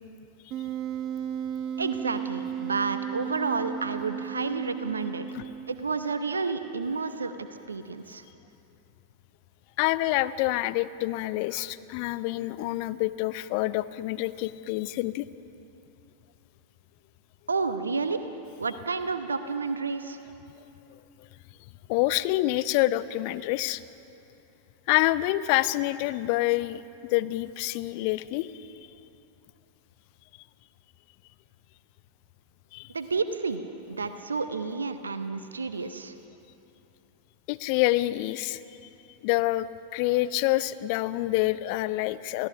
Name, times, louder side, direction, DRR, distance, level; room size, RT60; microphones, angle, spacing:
Wind instrument woodwind instrument, 0.5-5.9, right 9 dB, 40° right, 0.7 m, -34 dB
voice 1, 1.8-5.2 5.7-8.2 17.5-18.2 18.6-20.2 32.9-33.6 33.9-36.1, right 4 dB, 75° right, 10 dB, 0.9 m, -30 dB
voice 2, 9.8-15.3 21.9-23.8 24.9-26.8 27.1-28.7 32.7-32.9 37.5-38.6 39.2-42.5, left 17 dB, 45° left, 15 dB, 0.7 m, -27 dB
28.5 x 17.0 x 5.9 m, 2.8 s
figure-of-eight pair, 90°, 0 cm